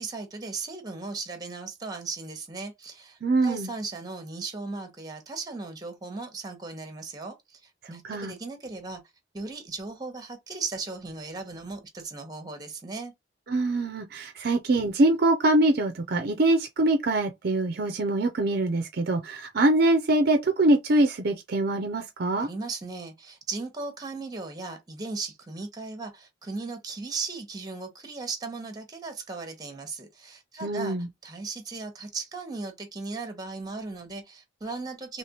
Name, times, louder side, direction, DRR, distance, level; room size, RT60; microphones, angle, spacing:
voice 1, 0.0-9.0 9.3-13.1 22.4-31.0 31.2-35.2, right 3 dB, 20° right, 1.0 m, -37 dB
voice 2, 3.2-3.7 8.0-8.3 13.5-22.5 30.6-31.1, right 2 dB, 55° right, 0.5 m, -24 dB
3.3 x 3.0 x 2.9 m
head